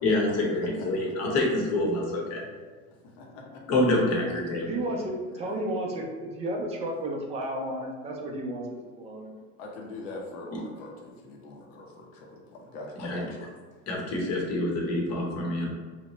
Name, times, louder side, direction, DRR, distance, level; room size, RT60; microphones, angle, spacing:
voice 1, 0.0-2.5 3.7-4.7 13.0-13.2 13.9-15.7, left 2 dB, 40° left, -1 dB, 0.8 m, -26 dB
voice 2, 3.2-3.8 5.3-5.6 9.6-13.4, left 2 dB, 70° left, -1 dB, 0.8 m, -42 dB
voice 3, 4.7-9.3, right 1 dB, 15° right, 0 dB, 0.4 m, -32 dB
2.8 x 2.1 x 2.9 m, 1.5 s
supercardioid pair, 105°, 39 cm